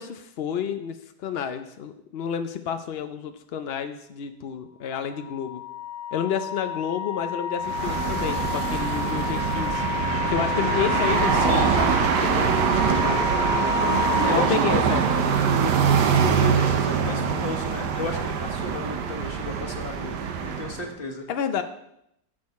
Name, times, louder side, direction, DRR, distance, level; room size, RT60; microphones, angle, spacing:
voice 1, 0.0-5.6 6.1-9.8 10.3-13.2 14.1-15.4 21.3-21.6, left 8 dB, 70° left, 8 dB, 0.5 m, -30 dB
Wind instrument woodwind instrument, 5.0-14.5, left 8 dB, 55° left, 1.7 m, -30 dB
sound 1, 7.6-20.9, right 6 dB, 85° right, 1.5 m, -24 dB
voice 2, 11.3-11.7 14.3-15.8 16.1-21.3, left 3 dB, 35° left, 3 dB, 1.4 m, -34 dB
14.0 x 6.4 x 4.2 m, 0.78 s
omnidirectional pair, 1.8 m